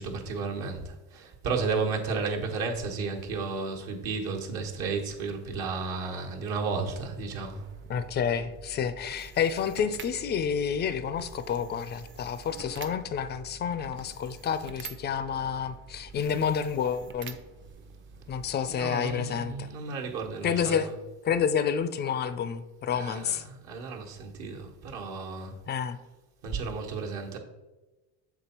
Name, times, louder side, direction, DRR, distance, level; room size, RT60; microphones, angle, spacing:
voice 1, 0.0-7.7 18.7-20.9 22.9-25.6 26.4-27.4, right 4 dB, 60° right, 1 dB, 1.3 m, -33 dB
sound 1, 7.0-19.0, right 4 dB, 30° right, 0.6 m, -47 dB
voice 2, 7.9-17.4 18.3-19.7 20.4-20.9 21.2-23.4 25.7-26.0, left 7 dB, 25° left, 12 dB, 0.4 m, -29 dB
7.1 x 3.6 x 4.3 m, 1.1 s
supercardioid pair, 100°, 41 cm